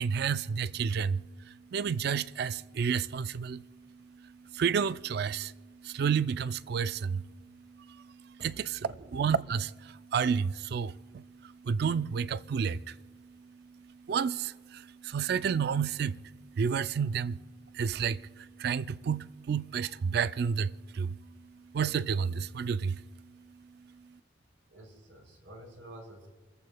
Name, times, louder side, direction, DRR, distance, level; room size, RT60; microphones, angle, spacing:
voice 1, 0.0-8.8 9.1-24.2, right 6 dB, 55° right, 0.3 m, -32 dB
voice 2, 24.7-26.3, right 1 dB, 80° right, 4.5 m, -49 dB
29.5 x 14.5 x 2.2 m
head